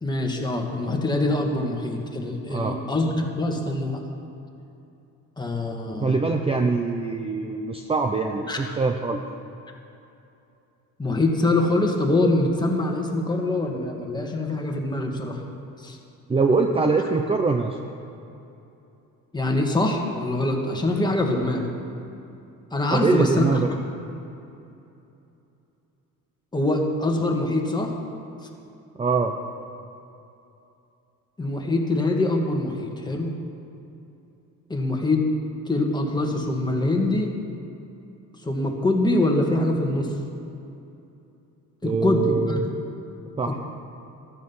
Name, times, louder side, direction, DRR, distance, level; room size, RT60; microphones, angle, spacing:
voice 1, 0.0-4.0 5.4-6.2 8.5-8.8 11.0-15.4 15.8-16.0 19.3-21.7 22.7-23.6 26.5-27.9 31.4-33.3 34.7-35.2 35.7-37.3 38.4-40.1 41.8-42.6, left 2 dB, 10° left, 1 dB, 1.8 m, -24 dB
voice 2, 6.0-9.2 16.3-17.8 22.9-23.7 29.0-29.4 41.8-42.7 43.4-43.6, right 4 dB, 15° right, 4 dB, 0.7 m, -23 dB
14.0 x 12.5 x 5.6 m, 2.8 s
cardioid pair, 125°, 34 cm